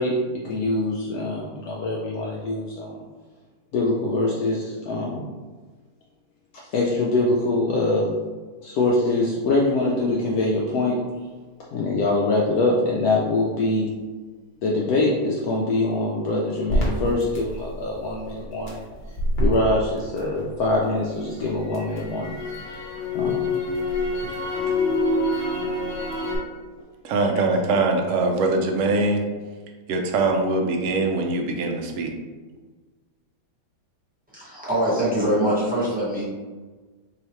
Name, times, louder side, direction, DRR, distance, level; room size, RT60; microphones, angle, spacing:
voice 1, 0.0-3.0 3.7-5.2 6.7-8.1 8.6-11.0 11.7-13.9 14.6-18.8 19.4-22.4 22.6-22.8 23.1-23.4 24.2-24.3, left 2 dB, 70° left, -4 dB, 1.0 m, -24 dB
Crackle, 16.7-20.8 21.2-26.4, left 1 dB, 45° left, 1.0 m, -26 dB
voice 2, 27.0-29.2 29.9-32.1, right 3 dB, 65° right, 3 dB, 0.8 m, -22 dB
voice 3, 34.3-36.2, right 1 dB, 5° right, -8 dB, 1.1 m, -23 dB
3.8 x 2.9 x 3.0 m, 1.4 s
omnidirectional pair, 1.8 m